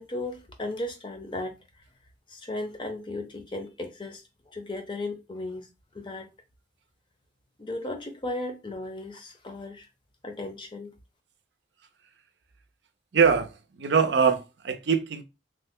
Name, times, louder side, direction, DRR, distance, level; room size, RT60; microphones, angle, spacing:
voice 1, 0.0-1.6 2.3-5.7 5.9-6.3 7.6-9.9 10.2-10.9, left 2 dB, 25° left, 0.6 m, -36 dB
voice 2, 13.1-15.2, right 6 dB, 70° right, 0.5 m, -23 dB
3.1 x 2.1 x 3.5 m
head